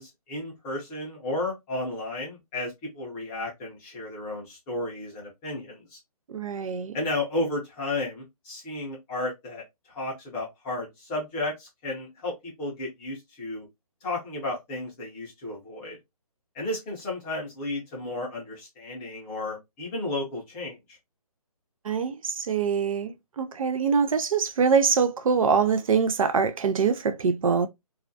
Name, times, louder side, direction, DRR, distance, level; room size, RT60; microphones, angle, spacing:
voice 1, 0.0-6.0 6.9-13.7 14.0-16.0 16.5-21.0, left 2 dB, 10° left, 0.5 m, -33 dB
voice 2, 6.3-6.9 21.9-27.7, right 6 dB, 60° right, 0.4 m, -24 dB
2.4 x 2.1 x 2.5 m
hypercardioid pair, 160°, 20 cm